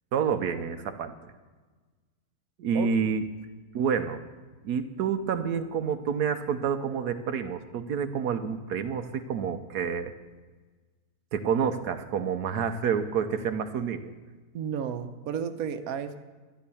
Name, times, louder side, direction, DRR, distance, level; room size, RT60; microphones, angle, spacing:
voice 1, 0.1-1.3 2.6-3.2 3.7-4.2 4.6-10.1 11.3-14.1, right 7 dB, 85° right, 7 dB, 1.4 m, -28 dB
voice 2, 14.5-16.1, right 7 dB, 65° right, 8 dB, 1.3 m, -32 dB
13.0 x 11.0 x 7.0 m, 1.3 s
omnidirectional pair, 1.7 m